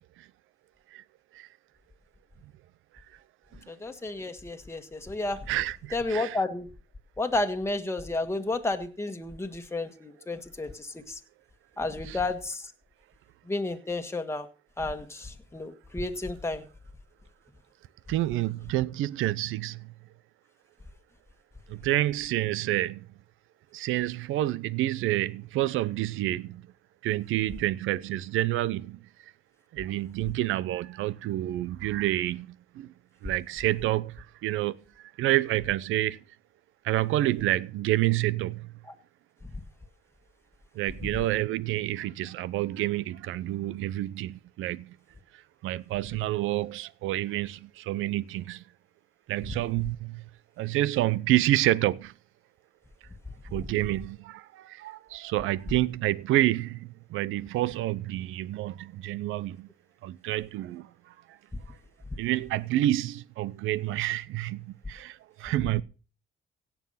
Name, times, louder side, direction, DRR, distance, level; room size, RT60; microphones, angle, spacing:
voice 1, 3.7-5.4 5.9-6.7 7.2-11.2 11.8-12.7 13.5-14.5 14.8-16.6, left 2 dB, 15° left, 1.6 m, -31 dB
voice 2, 5.5-6.4 12.1-12.2 18.1-19.9 21.7-23.1 23.7-26.6 27.0-29.1 29.7-32.9 33.2-36.2 36.8-38.7 40.7-45.0 45.3-48.6 49.3-50.2 50.6-52.1 53.5-59.7 60.0-60.9 61.3-61.4 62.2-65.8, right 15 dB, 90° right, 0.7 m, -28 dB
16.5 x 7.2 x 5.6 m
cardioid pair, 90°, 20 cm